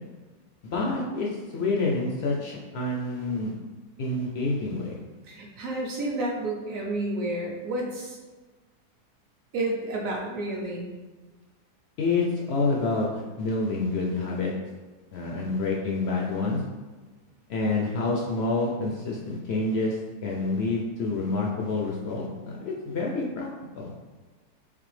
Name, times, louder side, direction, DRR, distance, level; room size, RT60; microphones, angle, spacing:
voice 1, 0.6-3.5 4.0-5.0 12.0-14.5 15.1-16.6 17.5-23.5 23.8-23.9, left 3 dB, 75° left, -2 dB, 0.5 m, -28 dB
voice 2, 5.2-8.2 9.5-10.9, right 2 dB, 65° right, -1 dB, 0.9 m, -30 dB
3.9 x 3.2 x 3.2 m, 1.3 s
omnidirectional pair, 1.7 m